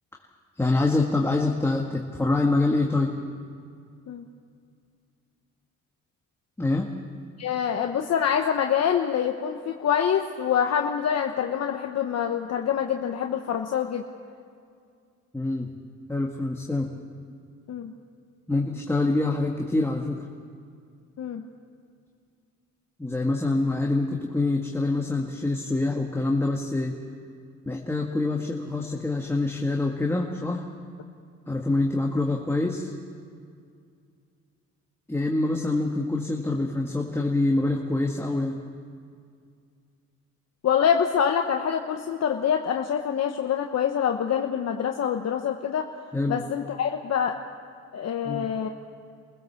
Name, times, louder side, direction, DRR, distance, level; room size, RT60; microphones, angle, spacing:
voice 1, 0.6-3.1 6.6-6.9 15.3-15.7 16.1-16.9 18.5-20.2 23.0-26.9 27.7-30.6 31.5-32.9 35.1-38.6 46.1-46.4 48.3-48.4, left 2 dB, 10° left, 0 dB, 1.8 m, -25 dB
voice 2, 7.4-14.1 17.7-17.9 21.2-21.5 40.6-45.9 46.3-47.4 47.9-48.7, left 8 dB, 55° left, 3 dB, 1.2 m, -25 dB
28.0 x 16.0 x 7.2 m, 2.2 s
cardioid pair, 90°, 30 cm